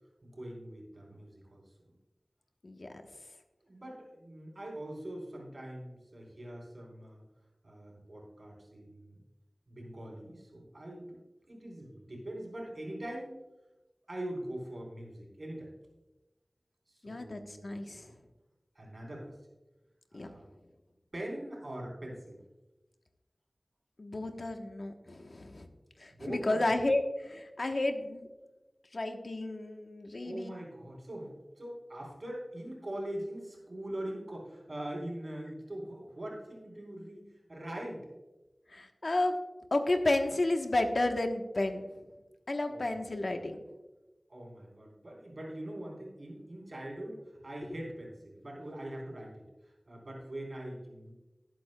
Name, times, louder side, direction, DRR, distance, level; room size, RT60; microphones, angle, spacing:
voice 1, 0.2-1.6 3.6-7.2 7.6-9.2 9.7-11.2 11.5-13.3 14.1-15.7 16.9-18.2 18.7-19.4 20.1-20.4 21.1-22.4 26.1-26.7 30.2-38.1 42.7-43.1 44.3-51.2, right 1 dB, 60° right, -1 dB, 4.0 m, -42 dB
voice 2, 17.0-18.0 20.1-20.3 24.0-25.7 26.0-28.2 28.9-30.5 38.7-39.4 39.7-41.9 42.5-43.6, left 2 dB, 70° left, 5 dB, 1.0 m, -32 dB
18.5 x 8.5 x 2.2 m, 1.1 s
wide cardioid pair, 45°, 0 cm